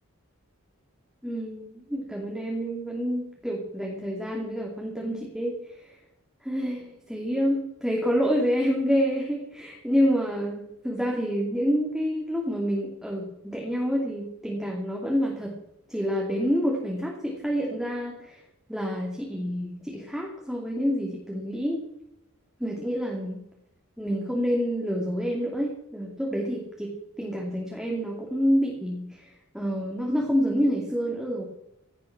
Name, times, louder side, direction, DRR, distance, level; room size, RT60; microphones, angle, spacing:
voice 1, 1.2-5.9 6.4-15.5 15.9-18.4 18.7-21.8 22.6-23.4 24.0-31.5, equal, ahead, -2 dB, 2.6 m, -28 dB
17.0 x 12.0 x 6.0 m, 0.84 s
head